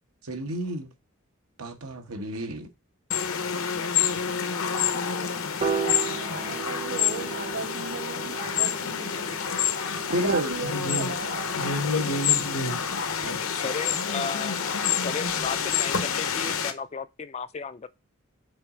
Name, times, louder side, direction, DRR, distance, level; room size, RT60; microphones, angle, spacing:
voice 1, 0.2-0.9 1.6-2.7 10.1-10.6 13.2-13.4, right 1 dB, 85° right, 1.2 m, -30 dB
sound 1, 3.1-16.7, left 7 dB, 70° left, 0.8 m, -28 dB
voice 2, 4.9-9.4 10.1-11.5, right 3 dB, 55° right, 1.5 m, -38 dB
Piano, 5.6-11.9, right 6 dB, 30° right, 0.8 m, -36 dB
voice 3, 10.7-11.1 11.5-13.3, left 1 dB, 85° left, 1.2 m, -30 dB
voice 4, 13.2-17.9, left 5 dB, 30° left, 0.3 m, -35 dB
5.7 x 4.0 x 4.8 m
head